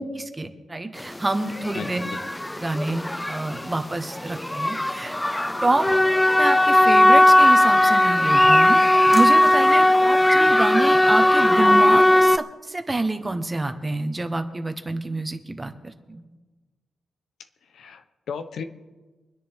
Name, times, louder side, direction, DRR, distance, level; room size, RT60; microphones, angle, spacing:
voice 1, 0.0-2.0 2.6-5.2 5.6-5.9 6.4-16.2, right 2 dB, 20° right, 8 dB, 1.2 m, -27 dB
sound 1, 1.0-1.2 1.5-12.4, left 1 dB, 10° left, 0.4 m, -18 dB
voice 2, 1.7-2.2 5.9-6.0 17.7-18.6, left 6 dB, 80° left, 8 dB, 0.9 m, -35 dB
24.5 x 10.0 x 3.7 m, 1.3 s
cardioid pair, 105°, 0 cm